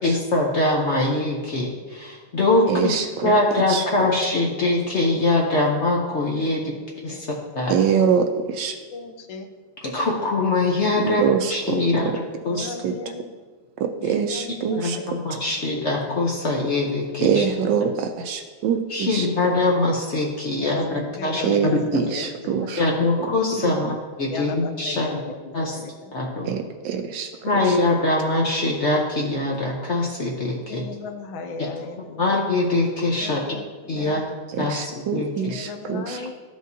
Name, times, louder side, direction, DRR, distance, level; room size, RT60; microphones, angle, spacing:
voice 1, 0.0-3.0 3.2-6.7 7.0-7.8 9.8-11.2 11.5-12.8 14.7-17.4 18.9-21.8 22.8-25.1 25.5-25.8 26.1-26.5 27.4-30.9 31.6-31.7 32.2-33.6 33.9-34.2 34.6-35.6 36.2-36.3, left 2 dB, 55° left, -1 dB, 0.8 m, -23 dB
voice 2, 2.7-3.3 3.7-3.8 7.7-8.8 11.0-11.8 12.0-12.1 12.6-12.9 13.8-15.0 17.2-19.3 21.4-22.8 23.6-23.8 26.5-27.3 34.6-36.2, right 7 dB, 75° right, 6 dB, 1.1 m, -24 dB
voice 3, 6.4-6.7 7.1-7.2 8.9-9.5 9.9-10.2 12.4-13.3 14.0-15.5 20.6-22.3 22.6-22.8 24.3-26.1 30.7-32.2 33.2-33.7 33.9-34.2 35.3-36.3, left 4 dB, 85° left, 6 dB, 1.5 m, -37 dB
13.0 x 5.1 x 2.7 m, 1.4 s
omnidirectional pair, 2.2 m